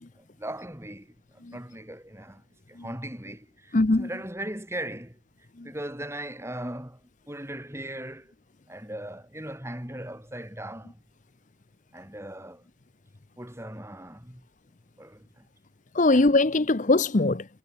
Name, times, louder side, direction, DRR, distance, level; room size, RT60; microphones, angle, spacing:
voice 1, 0.2-5.2 5.6-7.0 7.3-8.3 8.7-11.0 11.9-12.7 13.4-14.5 15.0-15.5 16.1-16.3, right 1 dB, 15° right, 5.6 m, -39 dB
voice 2, 3.7-4.1 5.6-5.7 15.9-17.5, left 2 dB, 40° left, 0.7 m, -21 dB
head